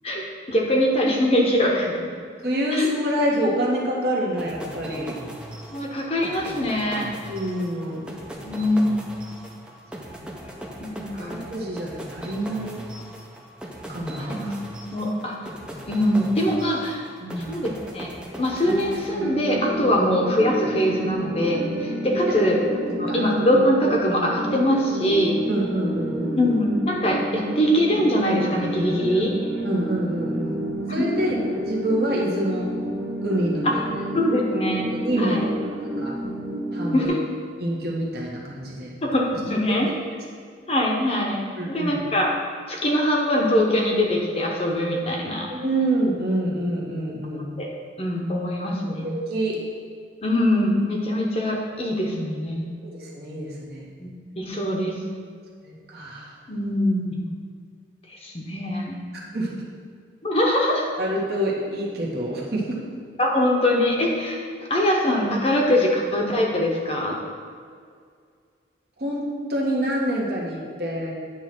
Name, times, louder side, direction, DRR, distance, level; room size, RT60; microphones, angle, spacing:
voice 1, 0.5-2.1 2.7-2.9 5.7-7.1 8.4-8.9 10.8-11.4 14.2-14.4 14.8-15.3 15.9-17.0 17.4-18.1 18.4-25.4 26.4-29.3 31.0-31.1 34.1-34.9 35.2-35.4 36.9-37.2 39.0-39.9 40.7-41.4 41.7-42.3 42.7-45.5 47.6-47.7 48.0-49.1 50.2-52.7 54.0-54.1 54.4-54.9 56.5-57.3 58.2-59.0 60.2-60.8 63.2-67.2, equal, 30° left, -1 dB, 0.9 m, -23 dB
voice 2, 2.4-5.2 7.2-8.1 10.1-10.4 11.2-12.8 13.9-14.5 17.2-17.6 22.3-22.4 23.1-23.2 25.5-26.4 29.6-30.6 30.9-31.4 31.6-32.7 33.2-33.8 34.9-36.2 36.7-37.1 37.6-38.9 39.7-39.8 41.6-42.0 45.5-47.5 49.0-49.6 52.8-53.8 55.6-56.3 59.1-59.6 61.0-62.8 69.0-69.2 69.5-71.1, right 1 dB, 55° right, -3 dB, 1.3 m, -27 dB
sound 1, 4.4-19.7, right 1 dB, 5° right, 0.6 m, -39 dB
sound 2, 18.6-37.1, right 1 dB, 70° right, 0.9 m, -30 dB
9.1 x 3.2 x 6.0 m, 2.1 s
head